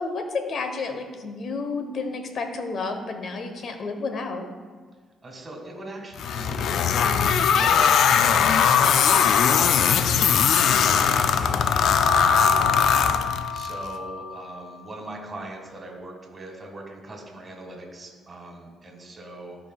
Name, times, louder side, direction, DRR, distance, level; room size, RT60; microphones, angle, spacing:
voice 1, 0.0-4.4, left 4 dB, 55° left, 6 dB, 0.9 m, -31 dB
voice 2, 5.2-12.8 13.5-19.6, right 1 dB, 30° right, 1 dB, 1.7 m, -41 dB
sound 1, 6.2-13.7, left 7 dB, 75° left, 0.3 m, -20 dB
sound 2, 11.8-14.6, left 4 dB, 90° left, 1.0 m, -26 dB
12.0 x 4.9 x 2.3 m, 1.5 s
cardioid pair, 90°, 0 cm